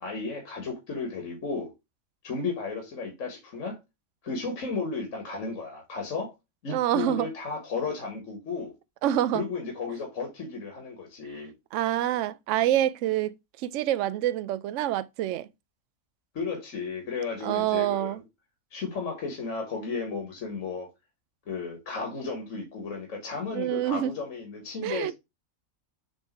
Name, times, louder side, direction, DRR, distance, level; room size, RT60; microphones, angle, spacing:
voice 1, 0.0-1.7 2.2-3.8 4.2-6.3 6.6-8.7 9.3-11.5 16.3-18.2 18.7-20.9 21.5-25.1, left 4 dB, 65° left, 1.9 m, -34 dB
voice 2, 6.7-7.3 9.0-9.4 11.7-15.5 17.4-18.2 23.5-24.2 24.8-25.1, right 12 dB, 70° right, 0.8 m, -27 dB
7.1 x 3.4 x 4.5 m
omnidirectional pair, 1.5 m